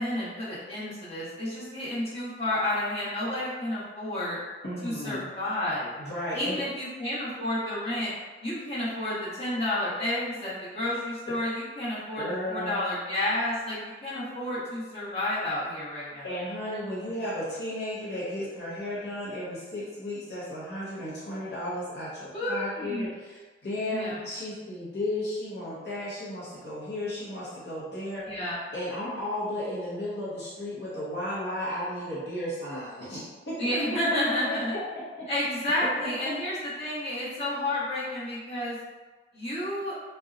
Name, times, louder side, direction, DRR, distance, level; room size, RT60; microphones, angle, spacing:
voice 1, 0.0-4.4 4.8-5.9 6.3-8.1 8.4-16.3 22.3-23.1 23.9-24.2 28.2-28.6 33.6-34.7 35.3-38.8 39.3-39.9, left 1 dB, 35° left, -12 dB, 1.1 m, -31 dB
voice 2, 4.6-5.3 6.0-6.6 12.2-12.8 16.2-28.2 28.7-33.5 33.9-34.0 34.2-34.8 35.2-35.3, left 1 dB, 75° left, -9 dB, 0.7 m, -34 dB
2.6 x 2.1 x 2.4 m, 1.3 s
head